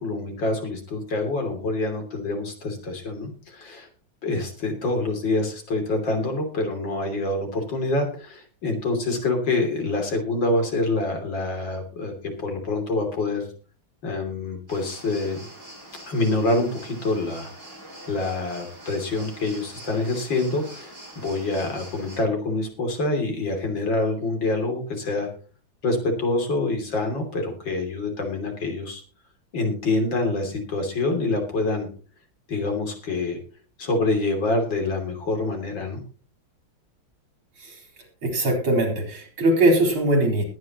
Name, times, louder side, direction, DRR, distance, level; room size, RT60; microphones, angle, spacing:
voice 1, 0.0-3.9 4.2-12.1 12.4-13.4 14.0-15.5 16.1-17.5 18.1-25.3 25.8-29.0 29.5-31.9 32.5-33.4 33.8-36.0, left 2 dB, 65° left, 3 dB, 3.7 m, -26 dB
sound 1, 14.7-22.2, right 1 dB, 55° right, 8.3 m, -44 dB
voice 2, 38.2-40.4, right 1 dB, 85° right, 3 dB, 4.8 m, -21 dB
20.5 x 9.5 x 3.0 m, 0.36 s
omnidirectional pair, 2.2 m